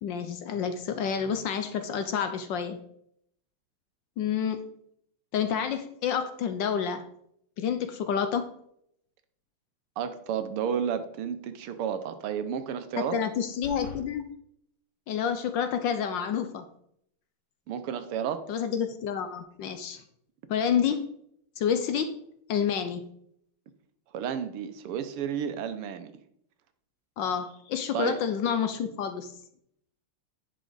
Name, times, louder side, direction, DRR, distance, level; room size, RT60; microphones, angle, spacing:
voice 1, 0.0-2.8 4.2-4.6 5.3-7.0 7.6-8.5 13.0-14.3 15.1-16.7 18.5-20.0 20.5-21.1 21.6-22.2 22.5-23.0 27.2-29.3, left 7 dB, 70° left, 9 dB, 1.2 m, -29 dB
voice 2, 10.0-13.2 17.7-18.4 24.1-26.1 27.9-28.2, right 8 dB, 85° right, 10 dB, 1.7 m, -31 dB
sound 1, 13.6-14.0, left 3 dB, 40° left, 1.5 m, -41 dB
10.0 x 6.1 x 4.0 m, 0.71 s
omnidirectional pair, 2.4 m